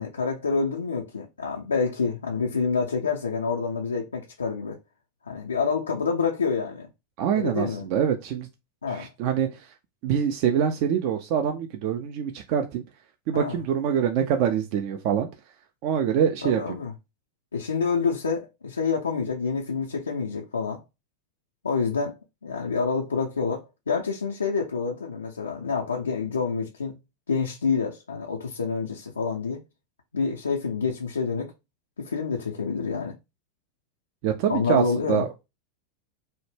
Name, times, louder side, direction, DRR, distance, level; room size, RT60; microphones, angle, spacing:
voice 1, 0.0-4.8 5.3-6.9 7.3-7.9 8.8-9.1 13.3-13.6 16.4-16.9 17.5-20.8 21.6-22.1 22.4-27.0 27.3-29.6 30.1-31.5 32.0-33.1 34.5-35.3, left 5 dB, 80° left, 0.4 m, -27 dB
voice 2, 7.2-8.5 8.9-9.7 10.0-12.8 13.3-15.3 15.8-16.6 34.2-35.4, right 8 dB, 50° right, 0.4 m, -25 dB
2.1 x 2.0 x 3.2 m
figure-of-eight pair, 90°, 0 cm